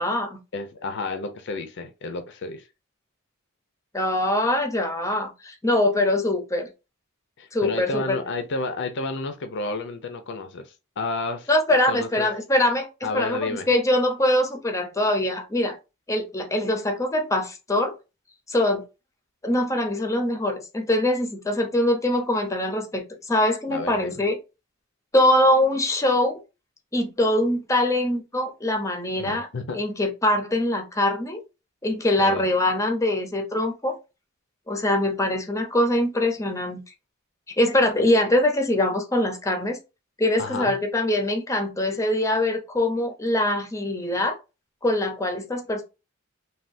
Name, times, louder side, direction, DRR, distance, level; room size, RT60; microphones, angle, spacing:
voice 1, 0.0-0.4 3.9-6.7 7.5-8.2 11.5-12.9 13.1-15.8 16.1-17.9 18.5-18.8 19.4-24.4 25.1-26.4 26.9-29.5 29.7-31.4 31.8-34.0 34.7-36.8 37.6-39.8 40.2-44.3 44.8-45.8, left 1 dB, 15° left, 0.6 m, -23 dB
voice 2, 0.5-2.7 7.4-11.5 11.8-12.3 13.0-13.7 23.7-24.2 29.2-29.8 32.2-32.5 40.4-40.8, left 3 dB, 60° left, 0.5 m, -31 dB
3.4 x 2.3 x 2.5 m
head